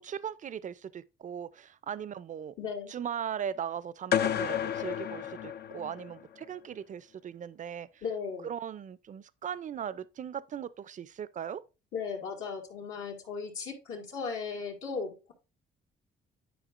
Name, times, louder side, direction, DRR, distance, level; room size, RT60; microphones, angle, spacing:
voice 1, 0.0-2.5 2.9-7.9 8.4-11.6, right 8 dB, 40° right, 0.5 m, -38 dB
voice 2, 2.6-2.9 8.0-8.5 11.9-15.3, left 5 dB, 75° left, 2.1 m, -36 dB
sound 1, 4.1-6.2, left 9 dB, 55° left, 0.5 m, -31 dB
10.0 x 4.8 x 2.5 m
cardioid pair, 90°, 20 cm